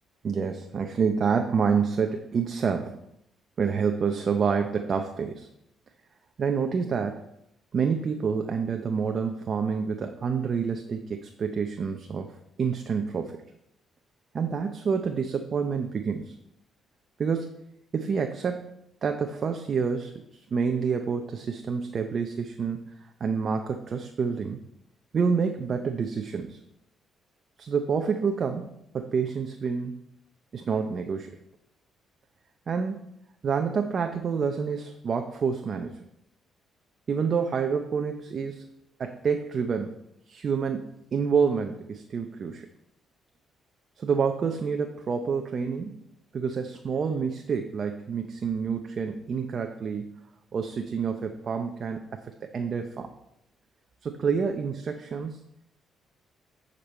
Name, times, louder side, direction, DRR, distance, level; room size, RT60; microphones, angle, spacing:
voice 1, 0.2-3.0 3.6-5.5 6.4-7.2 7.7-12.3 12.6-13.4 14.3-16.3 17.2-17.5 17.9-24.6 25.1-26.6 27.6-28.7 28.9-30.0 30.5-31.4 32.7-33.0 33.4-36.0 37.1-38.6 39.0-39.9 40.3-42.7 44.0-45.9 46.3-50.2 50.5-53.1 54.0-55.4, right 6 dB, 50° right, 5 dB, 0.7 m, -28 dB
10.0 x 5.3 x 4.3 m, 0.79 s
cardioid pair, 90°, 0 cm